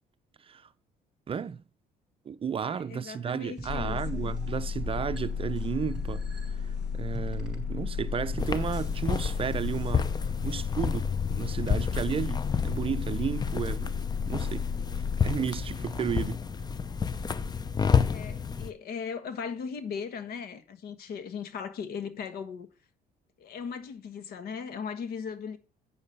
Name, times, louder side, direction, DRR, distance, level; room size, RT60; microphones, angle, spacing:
voice 1, 1.3-1.6 2.3-6.2 6.5-6.7 6.9-13.9 14.3-14.7 15.0-16.4, right 7 dB, 35° right, 0.6 m, -33 dB
voice 2, 2.7-4.2 18.0-22.7 23.4-25.6, left 6 dB, 65° left, 1.4 m, -38 dB
sound 1, 3.6-9.9, right 2 dB, 5° right, 4.7 m, -44 dB
sound 2, 3.7-15.4, left 6 dB, 85° left, 1.1 m, -33 dB
sound 3, 8.4-18.7, left 6 dB, 25° left, 0.6 m, -30 dB
8.5 x 6.9 x 5.5 m
cardioid pair, 110°, 17 cm